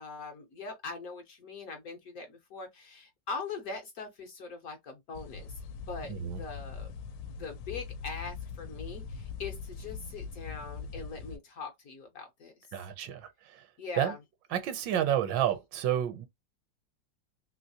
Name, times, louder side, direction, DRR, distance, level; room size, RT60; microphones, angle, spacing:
voice 1, 0.0-5.5 5.9-6.9 7.3-12.7 13.8-14.2, left 4 dB, 65° left, 1.0 m, -42 dB
sound 1, 5.1-11.4, left 5 dB, 80° left, 1.2 m, -42 dB
voice 2, 6.1-6.4 12.7-13.6 14.0-14.2 14.5-16.3, right 10 dB, 80° right, 1.3 m, -30 dB
3.1 x 2.9 x 2.7 m
omnidirectional pair, 2.0 m